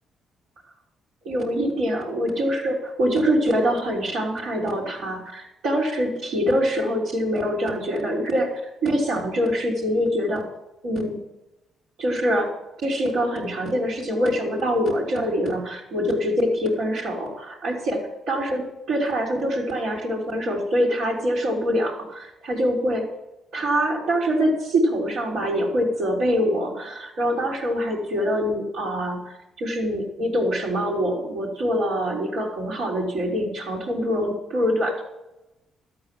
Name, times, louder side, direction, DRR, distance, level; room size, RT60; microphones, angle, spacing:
voice 1, 1.2-10.5 10.8-11.2 12.0-12.5 12.8-18.0 18.3-23.0 23.5-35.0, equal, 80° right, -5 dB, 4.1 m, -24 dB
13.0 x 8.8 x 7.7 m, 0.96 s
cardioid pair, 90°, 0 cm